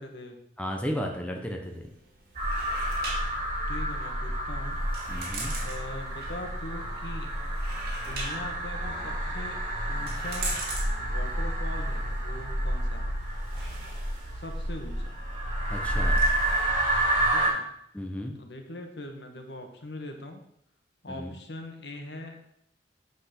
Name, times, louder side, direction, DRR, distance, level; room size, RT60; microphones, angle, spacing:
voice 1, 0.0-0.4 3.7-4.8 5.6-7.3 8.0-9.6 9.9-10.6 11.0-13.2 14.3-15.1 17.3-17.6 18.3-20.4 21.0-22.4, left 1 dB, 70° left, 4 dB, 1.6 m, -41 dB
voice 2, 0.6-1.9 5.1-5.5 15.7-16.2 17.9-18.3 21.1-21.3, equal, 5° left, 1 dB, 1.1 m, -34 dB
sound 1, 1.6-16.6, right 3 dB, 60° right, 2.5 m, -43 dB
exhale spacy spooky, 2.3-17.5, right 1 dB, 45° right, 4.1 m, -29 dB
8.3 x 6.2 x 6.0 m, 0.74 s
head